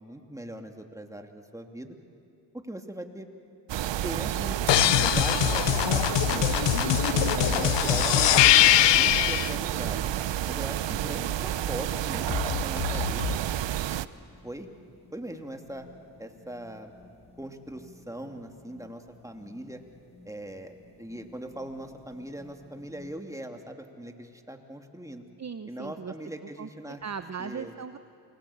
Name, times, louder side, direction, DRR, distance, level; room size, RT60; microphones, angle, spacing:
voice 1, 0.0-1.9 2.5-3.3 4.0-6.9 7.5-10.1 10.5-13.4 14.4-14.7 15.1-15.9 16.2-16.9 17.4-19.8 20.2-25.2 25.7-27.0 27.4-27.7, right 1 dB, 5° right, 4 dB, 2.9 m, -40 dB
sound 1, 3.7-14.1, right 12 dB, 75° right, 0.8 m, -30 dB
sound 2, 4.7-9.5 12.3-13.4, left 15 dB, 75° left, 0.6 m, -22 dB
sound 3, 6.4-23.2, left 2 dB, 15° left, 7.2 m, -55 dB
voice 2, 7.1-8.2 25.4-26.1 26.6-28.0, right 6 dB, 40° right, 10 dB, 0.9 m, -39 dB
28.0 x 20.5 x 8.8 m, 2.5 s
supercardioid pair, 45°, 44 cm